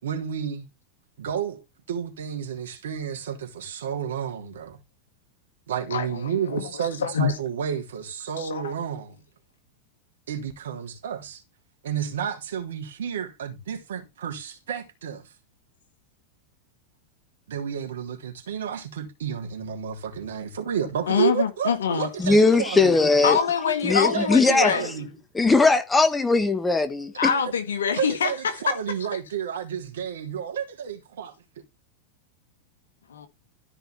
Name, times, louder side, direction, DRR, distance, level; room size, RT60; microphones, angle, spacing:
voice 1, 0.0-0.7 1.2-4.8 5.7-9.2 10.3-11.4 11.8-15.3 17.5-23.0 24.1-25.1 27.9-31.3, right 8 dB, 60° right, 3.4 m, -31 dB
voice 2, 5.9-6.7 7.0-7.3 8.4-8.6 21.1-22.1 23.2-25.0 27.2-28.7 29.1-29.2 33.1-33.3, left 6 dB, 65° left, 2.1 m, -25 dB
voice 3, 22.2-23.4 23.8-24.7 25.3-27.3, left 3 dB, 10° left, 1.5 m, -19 dB
14.0 x 5.6 x 4.6 m
figure-of-eight pair, 90°, 0 cm